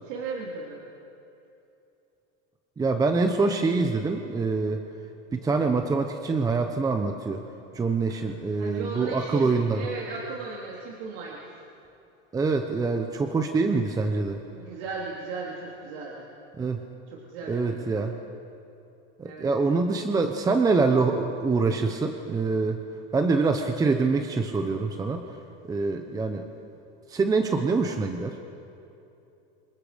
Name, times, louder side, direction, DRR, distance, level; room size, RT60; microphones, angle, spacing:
voice 1, 0.0-0.8 8.6-11.4 14.5-16.3 17.1-18.1 19.2-19.5, right 4 dB, 70° right, -3 dB, 3.5 m, -36 dB
voice 2, 2.8-4.8 5.3-7.4 7.7-9.8 12.3-14.4 16.6-16.8 17.5-18.1 19.2-22.8 23.1-25.2 25.7-26.5 27.1-28.4, right 4 dB, 10° right, 5 dB, 0.9 m, -25 dB
29.0 x 26.5 x 5.2 m, 2.8 s
supercardioid pair, 155°, 30 cm